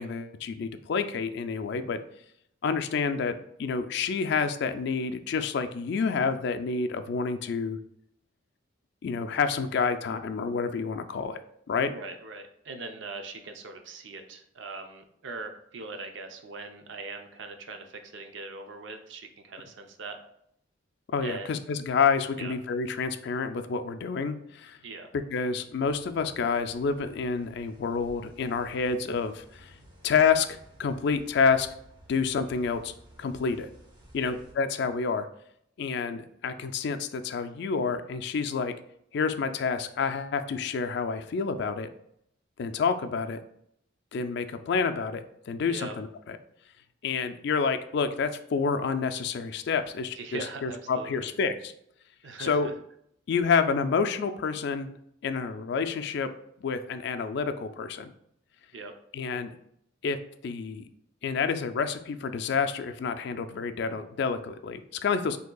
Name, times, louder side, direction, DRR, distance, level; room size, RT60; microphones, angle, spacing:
voice 1, 0.0-2.0 2.6-7.8 9.0-11.4 11.7-11.9 21.1-24.8 25.3-29.7 30.0-31.7 32.1-32.9 33.2-33.7 34.1-35.3 35.8-38.7 39.1-41.9 42.6-43.4 44.1-46.4 47.0-51.7 52.4-52.7 53.3-55.0 55.2-56.3 56.6-58.1 59.1-59.5 60.0-60.2 60.4-60.8 61.2-65.4, left 5 dB, 60° left, 9 dB, 0.3 m, -28 dB
voice 2, 11.9-20.2 21.2-21.6 22.3-22.5 24.8-25.1 34.2-34.3 45.6-46.0 50.1-51.3 52.2-52.7 58.7-58.9, right 3 dB, 70° right, 5 dB, 0.6 m, -41 dB
sound 1, 25.8-34.5, equal, 25° right, 1.0 m, -54 dB
6.3 x 2.8 x 2.3 m, 0.72 s
head